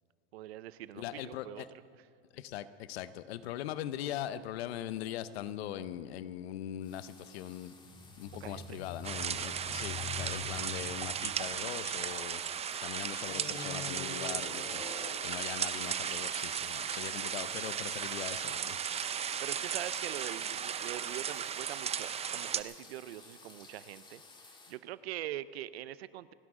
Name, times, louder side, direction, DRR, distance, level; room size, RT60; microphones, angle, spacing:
voice 1, 0.3-1.6 8.4-8.8 19.4-24.2 24.7-26.3, right 13 dB, 90° right, 17 dB, 0.6 m, -43 dB
voice 2, 0.9-1.7 2.3-7.8 8.2-18.8, left 11 dB, 80° left, 15 dB, 0.8 m, -41 dB
sound 1, 6.8-24.8, left 3 dB, 15° left, 1.7 m, -56 dB
sound 2, 7.8-12.6 13.2-15.4, left 4 dB, 45° left, 4.7 m, -45 dB
sound 3, 9.0-22.6, right 8 dB, 20° right, 0.5 m, -36 dB
28.5 x 10.5 x 3.7 m, 2.2 s
supercardioid pair, 110°, 30 cm